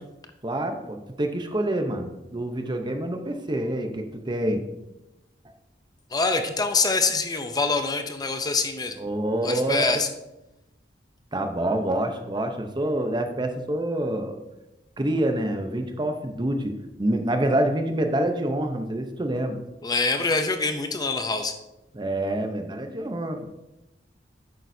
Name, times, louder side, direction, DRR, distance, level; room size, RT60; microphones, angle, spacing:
voice 1, 0.4-4.6 9.0-10.0 11.3-14.4 15.0-19.6 21.9-23.5, right 1 dB, 25° right, 6 dB, 0.8 m, -27 dB
voice 2, 6.1-9.0 9.4-10.1 19.8-21.5, left 3 dB, 20° left, 7 dB, 0.6 m, -25 dB
10.5 x 8.4 x 2.7 m, 0.95 s
head